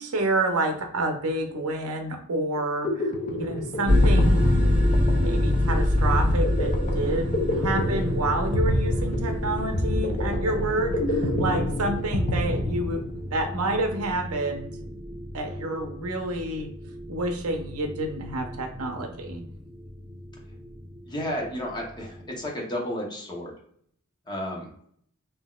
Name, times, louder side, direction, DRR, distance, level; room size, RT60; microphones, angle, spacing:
voice 1, 0.0-4.5 5.2-13.0 13.3-14.7 15.3-16.7 17.1-19.4, right 2 dB, 70° right, 4 dB, 0.7 m, -29 dB
sound 1, 2.6-13.4, left 1 dB, 35° left, 0.5 m, -28 dB
sound 2, 3.9-22.4, left 1 dB, 5° right, 1.4 m, -27 dB
voice 2, 21.0-23.5 24.3-24.7, equal, 20° left, -2 dB, 0.9 m, -32 dB
3.8 x 2.8 x 2.3 m, 0.64 s
head